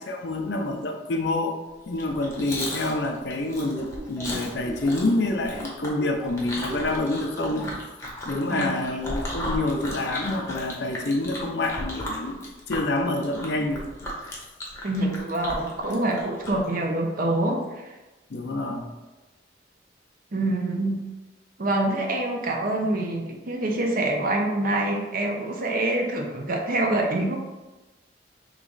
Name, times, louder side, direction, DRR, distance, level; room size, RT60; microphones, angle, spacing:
voice 1, 0.0-1.5 1.9-7.7 8.3-12.4 12.7-13.9 18.3-18.9, left 2 dB, 60° left, 3 dB, 0.6 m, -27 dB
Chewing mastication, 1.9-16.7, left 1 dB, 15° left, 0.8 m, -35 dB
Laughter, 4.0-7.8 8.3-8.8, right 1 dB, 5° right, 0.3 m, -39 dB
voice 2, 14.8-17.9 20.3-21.0 21.6-27.4, right 1 dB, 50° right, 2 dB, 0.6 m, -26 dB
3.5 x 3.1 x 3.9 m, 1.1 s
head